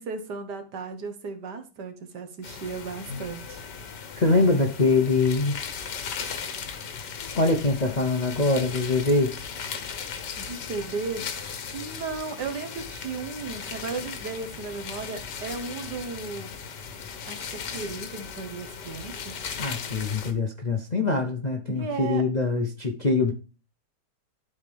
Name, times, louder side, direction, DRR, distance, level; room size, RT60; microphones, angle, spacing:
voice 1, 0.0-3.6 10.4-16.6 17.3-19.4 21.7-22.3, right 4 dB, 75° right, 1.8 m, -35 dB
sound 1, 2.4-20.3, left 6 dB, 85° left, 1.7 m, -37 dB
voice 2, 4.1-5.6 7.3-9.3 19.6-23.3, left 3 dB, 40° left, 0.6 m, -23 dB
12.0 x 4.3 x 3.4 m
omnidirectional pair, 1.8 m